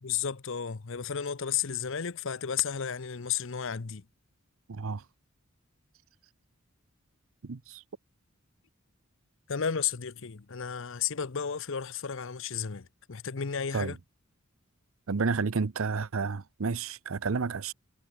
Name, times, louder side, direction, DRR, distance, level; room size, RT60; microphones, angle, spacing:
voice 1, 0.0-4.0 9.5-14.0, left 7 dB, 65° left, 0.8 m, -33 dB
voice 2, 4.7-5.0 7.4-7.8 13.7-14.0 15.1-17.7, right 4 dB, 75° right, 0.7 m, -31 dB
head